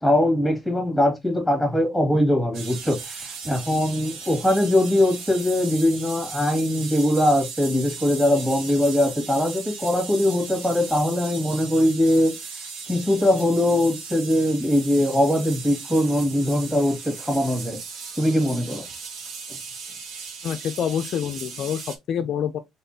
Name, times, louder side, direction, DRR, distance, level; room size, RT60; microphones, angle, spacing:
voice 1, 0.0-12.3 12.9-17.8 18.2-18.8, left 1 dB, ahead, 1.9 m, -21 dB
sound 1, 2.5-22.0, right 5 dB, 65° right, 1.3 m, -37 dB
voice 2, 20.4-22.6, left 8 dB, 55° left, 0.5 m, -27 dB
4.2 x 3.7 x 2.7 m
cardioid pair, 135°, 0 cm